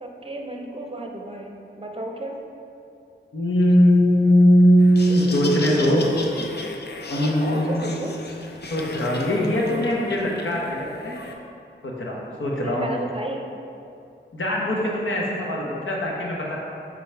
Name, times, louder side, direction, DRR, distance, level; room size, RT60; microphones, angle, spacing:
voice 1, 0.0-2.4 5.5-6.4 7.5-8.2 12.6-13.4 15.3-15.7, right 1 dB, 30° right, 2 dB, 0.7 m, -34 dB
voice 2, 3.3-6.0 7.1-8.1 8.7-11.2 12.0-12.9 14.3-16.6, equal, 75° left, -3 dB, 1.1 m, -20 dB
Laughter, 4.8-11.3, left 2 dB, 55° left, 0.6 m, -34 dB
7.2 x 3.9 x 3.4 m, 2.6 s
cardioid pair, 50°, 21 cm